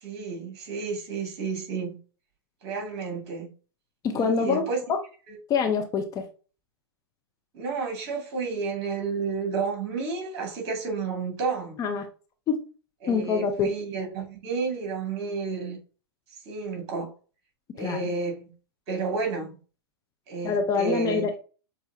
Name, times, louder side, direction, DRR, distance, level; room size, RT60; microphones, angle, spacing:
voice 1, 0.0-1.9 2.6-3.5 4.1-4.8 5.3-5.4 7.5-11.8 13.0-15.8 16.5-17.1 17.7-18.5 18.9-19.6 20.3-21.2, right 4 dB, 40° right, 2.3 m, -31 dB
voice 2, 4.0-5.0 5.5-6.3 11.8-12.1 12.5-12.6 13.1-13.7 17.8-18.1 20.4-21.4, left 5 dB, 25° left, 0.8 m, -25 dB
6.8 x 2.7 x 2.8 m
figure-of-eight pair, 105°, 14 cm